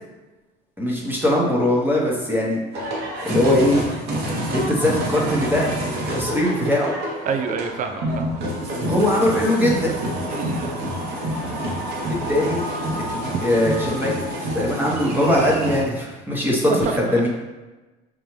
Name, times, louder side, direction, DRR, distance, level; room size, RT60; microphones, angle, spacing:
voice 1, 0.8-2.6 3.2-3.8 4.5-6.9 8.8-9.9 12.3-12.7 13.4-14.2 14.5-17.3, left 1 dB, 10° right, -4 dB, 1.0 m, -21 dB
sound 1, 2.7-15.8, right 1 dB, 65° right, 1.1 m, -27 dB
voice 2, 7.3-8.4 10.3-10.7 16.7-17.0, right 5 dB, 45° right, 6 dB, 0.5 m, -27 dB
5.3 x 2.4 x 3.1 m, 1.2 s
supercardioid pair, 95°, 19 cm